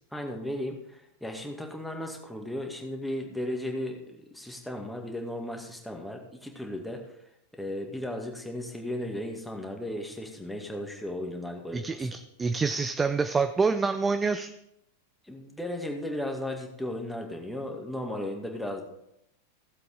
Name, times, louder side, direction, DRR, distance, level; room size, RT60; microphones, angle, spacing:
voice 1, 0.1-7.0 7.5-12.1 15.3-18.8, left 1 dB, 5° left, 2 dB, 2.1 m, -35 dB
voice 2, 11.7-14.5, right 4 dB, 15° right, 9 dB, 0.5 m, -27 dB
17.0 x 7.7 x 3.8 m, 0.81 s
figure-of-eight pair, 90°, 0 cm